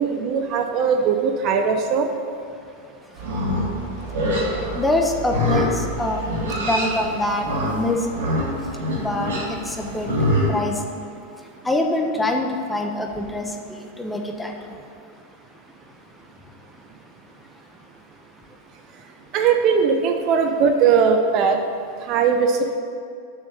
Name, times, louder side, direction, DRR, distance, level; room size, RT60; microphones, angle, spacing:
voice 1, 0.0-2.1 19.3-21.6 22.1-22.8, right 6 dB, 40° right, 6 dB, 0.6 m, -19 dB
Livestock farm animals working animals, 3.1-10.5, equal, 65° right, 2.0 m, -25 dB
voice 2, 4.7-7.4 7.7-8.1 9.0-10.1 10.5-10.7 11.6-13.5 14.0-14.5, left 2 dB, 10° left, 3 dB, 0.9 m, -24 dB
6.6 x 6.3 x 6.4 m, 2.4 s
figure-of-eight pair, 90°, 0 cm